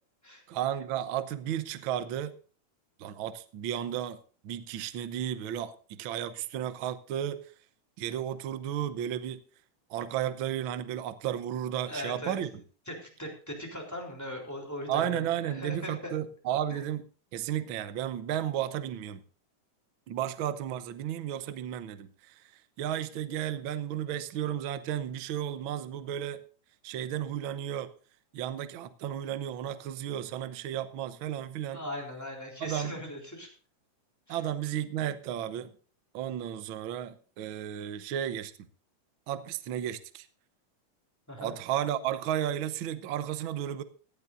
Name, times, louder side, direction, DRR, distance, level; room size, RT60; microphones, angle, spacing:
voice 1, 0.5-2.3 3.0-4.2 4.4-7.5 8.0-9.4 9.9-12.6 14.9-17.0 17.3-19.2 20.1-22.4 22.8-26.4 26.8-27.9 28.3-31.8 32.6-32.9 34.3-35.7 36.1-38.5 39.3-40.3 41.4-43.8, right 10 dB, 80° right, 12 dB, 1.1 m, -33 dB
voice 2, 11.8-12.4 12.9-16.1 16.7-16.8 31.7-33.5 34.3-34.4 41.3-41.5, left 1 dB, 5° left, 0 dB, 3.3 m, -39 dB
17.5 x 12.0 x 2.6 m, 0.40 s
omnidirectional pair, 3.6 m